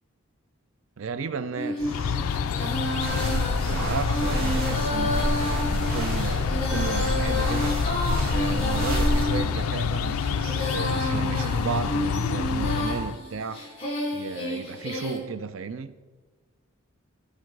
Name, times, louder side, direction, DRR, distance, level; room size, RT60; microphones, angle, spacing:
voice 1, 1.0-2.2 3.7-7.8 8.3-13.7 14.1-16.0, right 5 dB, 70° right, 0.5 m, -34 dB
Female singing, 1.6-15.2, left 1 dB, 25° left, 2.2 m, -31 dB
sound 1, 1.8-13.2, left 6 dB, 80° left, 0.4 m, -28 dB
sound 2, 3.0-9.3, equal, 45° right, 2.4 m, -29 dB
13.5 x 5.6 x 4.7 m
head